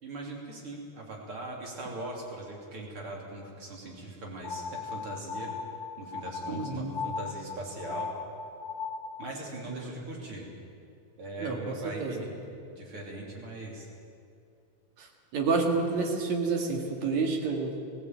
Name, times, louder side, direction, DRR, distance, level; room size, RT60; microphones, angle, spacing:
voice 1, 0.0-5.5 6.0-8.1 9.2-10.5 11.2-12.3 12.7-13.9 15.7-15.8, right 2 dB, 45° right, -1 dB, 3.8 m, -40 dB
sound 1, 4.4-9.3, left 5 dB, 45° left, 2.0 m, -37 dB
voice 2, 6.5-7.0 9.7-10.0 11.4-11.7 12.0-12.1 15.0-15.1 15.3-17.7, right 4 dB, 70° right, 2 dB, 3.4 m, -29 dB
20.0 x 15.5 x 8.9 m, 2.5 s
omnidirectional pair, 3.3 m